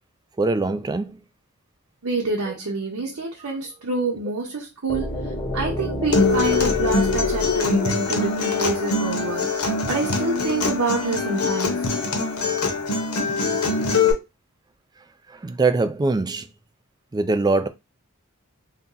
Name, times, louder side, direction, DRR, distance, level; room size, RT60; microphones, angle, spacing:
voice 1, 0.4-1.2 15.3-16.5 17.1-17.7, right 3 dB, 20° right, 0.3 m, -22 dB
voice 2, 2.0-5.2 5.5-9.5 9.9-11.9 13.2-13.4, right 3 dB, 70° right, 0.8 m, -27 dB
sound 1, 4.9-8.8, left 1 dB, 20° left, 0.7 m, -30 dB
Acoustic guitar, 6.1-14.1, left 4 dB, 85° left, 0.8 m, -23 dB
2.7 x 2.2 x 3.7 m
head